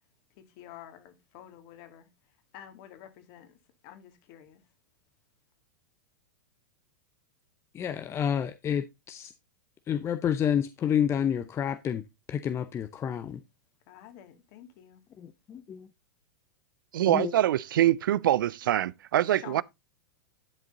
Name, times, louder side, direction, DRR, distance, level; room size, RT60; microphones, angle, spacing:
voice 1, 0.6-2.1 2.5-3.5 3.8-4.6 13.9-15.0 19.4-19.6, left 10 dB, 55° left, 2.3 m, -49 dB
voice 2, 7.7-9.3 9.9-12.0 12.3-13.4 15.2-15.9 17.1-17.3, left 9 dB, 25° left, 0.6 m, -29 dB
voice 3, 16.9-19.6, right 12 dB, 75° right, 0.4 m, -24 dB
11.0 x 5.1 x 3.8 m
hypercardioid pair, 110°, 11 cm